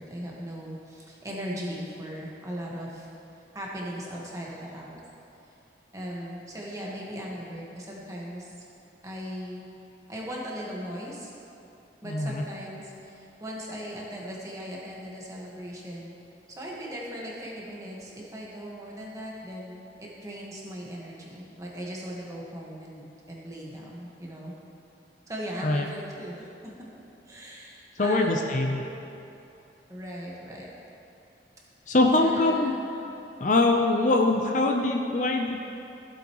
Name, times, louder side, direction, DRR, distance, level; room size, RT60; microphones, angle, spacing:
voice 1, 0.0-3.1 3.5-5.0 5.9-8.5 9.0-9.6 10.1-11.3 12.0-16.1 16.6-24.5 25.3-26.5 27.3-28.5 29.9-30.7 32.2-32.7, equal, 20° right, -4 dB, 1.5 m, -38 dB
voice 2, 12.0-12.4 25.6-25.9 28.0-28.8 31.9-32.7 33.4-35.6, left 2 dB, 45° left, 2 dB, 0.6 m, -23 dB
15.5 x 7.9 x 3.1 m, 2.8 s
head